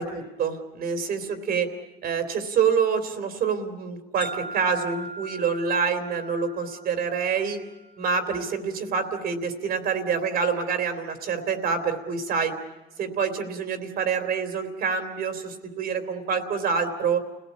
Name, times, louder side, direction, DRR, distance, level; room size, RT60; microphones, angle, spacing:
voice 1, 0.0-1.7 2.0-7.6 8.0-12.5 13.0-17.2, right 6 dB, 65° right, 7 dB, 3.2 m, -26 dB
sound 1, 4.2-8.2, right 2 dB, 30° left, 2.1 m, -40 dB
29.5 x 18.0 x 8.4 m, 1.1 s
cardioid pair, 110°, 17 cm